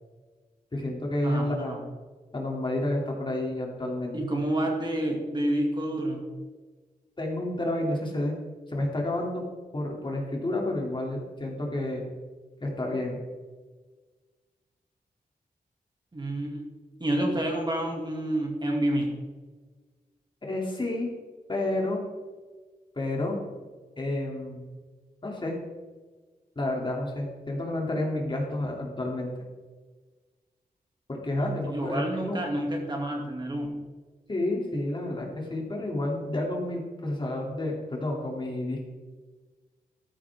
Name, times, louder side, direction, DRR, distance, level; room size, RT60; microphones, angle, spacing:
voice 1, 0.7-1.8 2.3-4.1 7.2-8.3 8.7-9.4 9.7-12.0 12.6-13.2 20.4-21.1 21.5-22.0 22.9-23.4 24.0-24.6 25.2-25.6 26.5-29.3 31.1-32.4 34.3-38.8, left 1 dB, 30° left, -1 dB, 3.0 m, -30 dB
voice 2, 1.2-1.8 4.1-6.2 16.1-16.6 17.0-19.1 31.4-33.8, right 1 dB, 30° right, 0 dB, 2.4 m, -29 dB
14.0 x 12.5 x 3.7 m, 1.4 s
wide cardioid pair, 125°, 15 cm